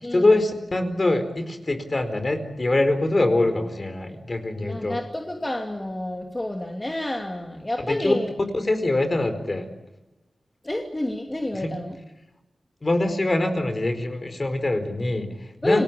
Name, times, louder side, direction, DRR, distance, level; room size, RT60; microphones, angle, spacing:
voice 1, 0.1-5.0 7.8-8.1 8.5-9.7 11.5-11.7 12.8-15.8, left 2 dB, 35° left, 8 dB, 4.5 m, -23 dB
voice 2, 4.6-8.3 10.6-12.0 15.6-15.8, left 1 dB, 20° left, 2 dB, 2.8 m, -29 dB
29.0 x 20.5 x 8.6 m, 0.99 s
wide cardioid pair, 95°, 0 cm